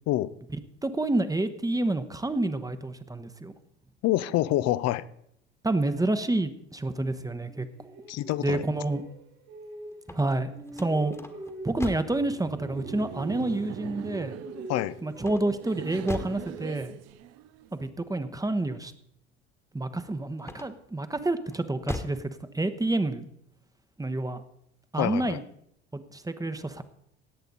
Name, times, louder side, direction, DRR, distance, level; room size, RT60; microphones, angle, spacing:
voice 1, 0.8-3.5 5.6-7.7 8.4-9.1 10.1-10.5 10.8-11.2 11.6-14.4 15.0-16.9 17.7-18.9 19.7-23.3 24.0-24.4 24.9-25.4 25.9-26.8, right 2 dB, 10° right, 11 dB, 1.0 m, -28 dB
voice 2, 4.0-5.0 8.1-8.6 14.7-15.0 25.0-25.4, left 15 dB, 50° left, 18 dB, 0.7 m, -26 dB
sound 1, 7.4-10.2 10.5-13.5 13.7-17.2, right 1 dB, 80° right, 6.0 m, -45 dB
sound 2, 9.9-12.2 15.2-16.5 20.4-20.9 21.5-22.3, left 2 dB, 10° left, 1.5 m, -38 dB
Laughter, 11.6-17.9, right 12 dB, 50° right, 0.7 m, -42 dB
18.0 x 8.1 x 4.0 m, 0.72 s
hypercardioid pair, 60°, 33 cm